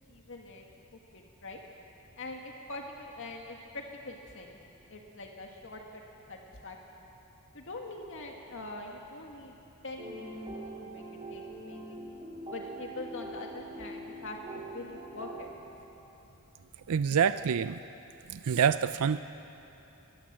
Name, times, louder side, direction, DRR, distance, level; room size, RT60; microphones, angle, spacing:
voice 1, 0.1-0.6 1.1-1.6 2.2-4.6 4.9-6.0 6.3-6.8 7.5-9.5 9.8-11.0 11.3-12.0 12.5-15.5, left 2 dB, 60° left, 1 dB, 1.9 m, -43 dB
sound 1, 10.0-15.5, right 1 dB, 25° right, 3.4 m, -43 dB
voice 2, 16.9-17.8 18.3-19.2, right 7 dB, 80° right, 12 dB, 0.5 m, -26 dB
23.5 x 21.0 x 7.5 m, 3.0 s
head